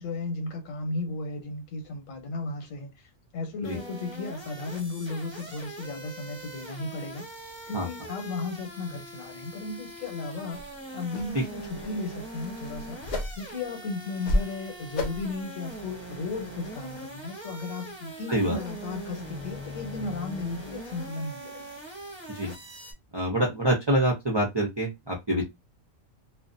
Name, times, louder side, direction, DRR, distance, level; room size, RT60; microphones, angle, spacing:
voice 1, 0.0-7.3 7.7-13.0 13.4-21.6, left 3 dB, 90° left, 1.1 m, -35 dB
sound 1, 3.6-22.9, right 1 dB, 10° right, 0.7 m, -42 dB
sound 2, 10.5-10.7 11.1-11.3 11.6-11.9 12.3-13.6 14.0-14.6 14.9-15.3 15.7-15.8, left 1 dB, 75° left, 0.4 m, -31 dB
voice 2, 23.1-25.4, right 1 dB, 40° right, 0.3 m, -26 dB
2.4 x 2.1 x 2.5 m
omnidirectional pair, 1.3 m